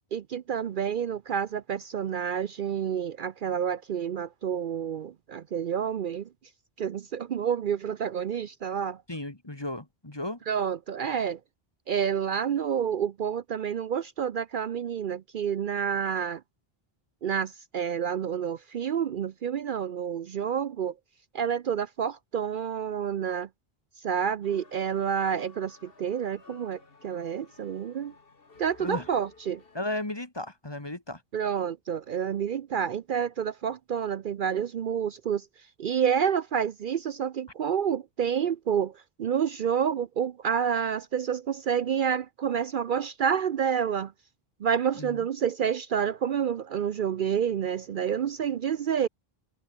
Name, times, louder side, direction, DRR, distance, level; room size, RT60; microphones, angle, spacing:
voice 1, 0.1-6.3 6.8-9.0 10.5-11.4 11.9-16.4 17.2-20.9 21.3-23.5 24.0-28.1 28.6-29.6 31.3-35.4 35.8-38.9 39.2-44.1 44.6-49.1, right 8 dB, 60° right, 0.7 m, -29 dB
voice 2, 9.1-10.4 28.8-29.1 29.7-31.2 45.0-45.3, left 1 dB, 25° left, 2.0 m, -35 dB
sound 1, 24.4-29.9, left 4 dB, 65° left, 2.2 m, -55 dB
omnidirectional pair, 1.0 m